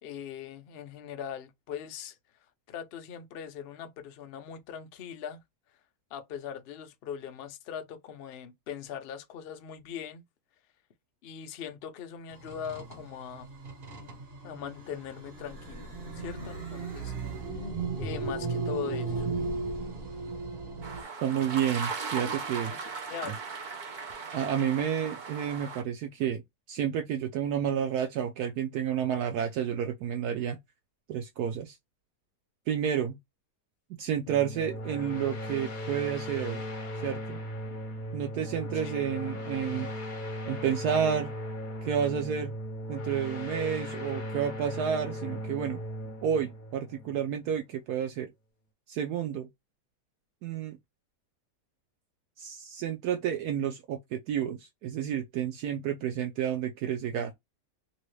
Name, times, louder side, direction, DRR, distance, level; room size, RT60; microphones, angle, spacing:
voice 1, 0.0-2.2 2.7-5.4 6.1-10.2 11.2-13.5 14.4-15.9 16.2-17.1 17.4-17.7 18.0-19.3 23.1-23.4 38.7-39.1, left 8 dB, 90° left, 0.5 m, -40 dB
sound 1, 12.3-21.0, right 3 dB, 40° right, 1.0 m, -36 dB
sound 2, 20.8-25.8, right 4 dB, 90° right, 0.4 m, -38 dB
voice 2, 21.2-22.7 23.2-23.3 24.3-26.4 26.7-30.6 31.1-31.8 32.7-33.2 34.0-36.6 37.0-37.4 38.1-39.9 40.5-41.3 41.8-42.5 42.9-45.8 46.2-48.3 48.9-49.5 50.4-50.8 52.4-57.3, right 8 dB, 70° right, 1.0 m, -30 dB
sound 3, 34.3-47.6, equal, 45° left, 0.6 m, -37 dB
3.0 x 2.8 x 3.1 m
omnidirectional pair, 1.8 m